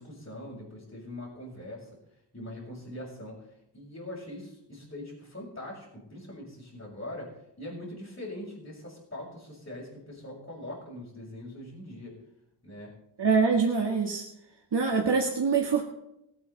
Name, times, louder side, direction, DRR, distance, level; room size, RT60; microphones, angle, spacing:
voice 1, 0.0-1.9 2.3-3.5 3.7-7.3 7.6-12.2 12.6-12.9, left 1 dB, 30° left, -8 dB, 6.1 m, -42 dB
voice 2, 13.2-14.2 14.7-15.8, right 5 dB, 70° right, 1 dB, 1.8 m, -24 dB
21.0 x 8.8 x 4.2 m, 0.85 s
wide cardioid pair, 100°, 42 cm